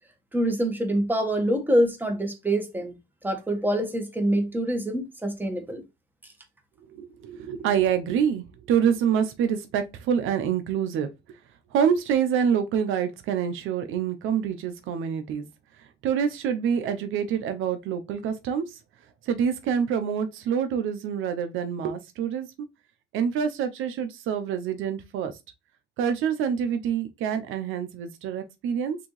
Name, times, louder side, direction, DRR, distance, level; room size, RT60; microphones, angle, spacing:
voice 1, 0.3-2.9 3.2-5.8, right 1 dB, 10° right, 1.3 m, -25 dB
voice 2, 6.9-11.1 11.7-15.5 16.0-18.8 19.2-22.5 23.1-25.4 26.0-29.0, right 8 dB, 85° right, 0.6 m, -26 dB
6.0 x 2.8 x 3.1 m
cardioid pair, 90°, 20 cm